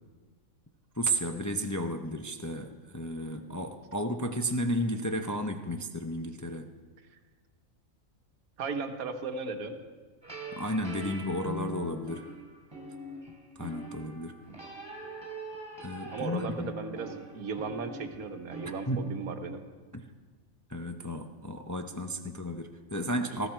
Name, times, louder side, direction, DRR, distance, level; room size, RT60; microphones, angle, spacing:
voice 1, 0.9-6.7 10.5-12.3 13.6-14.4 15.8-16.7 18.9-19.1 19.9-20.1 20.7-23.5, equal, 20° left, 5 dB, 0.6 m, -33 dB
voice 2, 8.6-9.7 16.1-19.6 23.3-23.5, right 4 dB, 85° right, 7 dB, 1.5 m, -36 dB
sound 1, 10.2-18.9, right 1 dB, 20° right, 3.1 m, -42 dB
19.5 x 15.5 x 4.5 m, 1.4 s
omnidirectional pair, 1.5 m